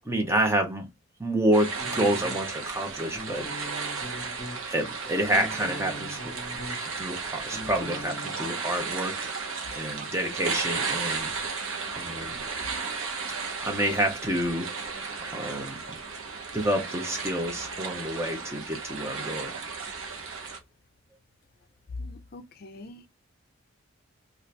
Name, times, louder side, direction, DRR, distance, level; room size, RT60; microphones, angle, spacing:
voice 1, 0.0-0.9 1.2-3.7 4.7-6.3 6.8-9.3 9.7-11.3 11.9-12.4 13.6-14.7 15.2-15.8 16.5-19.5, right 1 dB, 15° right, 0.6 m, -28 dB
sound 1, 1.5-20.6, right 5 dB, 75° right, 0.8 m, -34 dB
sound 2, 1.8-2.6 3.1-4.6 5.0-7.0 7.2-8.3, left 1 dB, 25° left, 1.1 m, -40 dB
voice 2, 22.0-23.1, left 2 dB, 45° left, 0.4 m, -42 dB
2.7 x 2.4 x 3.2 m
head